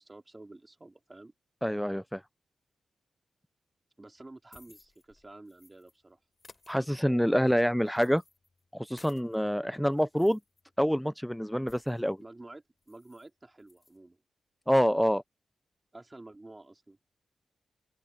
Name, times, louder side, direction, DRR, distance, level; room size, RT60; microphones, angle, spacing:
voice 1, 0.0-1.3 4.0-6.2 12.2-14.2 15.9-17.0, right 2 dB, 20° right, 4.2 m, -50 dB
voice 2, 1.6-2.2 6.7-8.2 8.7-10.4 10.8-12.2 14.7-15.2, equal, ahead, 0.4 m, -26 dB
sound 1, 4.2-6.0 6.3-9.4 9.8-12.1 12.4-12.5 12.8-13.3 13.6-14.0, left 3 dB, 35° left, 4.2 m, -60 dB
open air
cardioid pair, 80°, 0 cm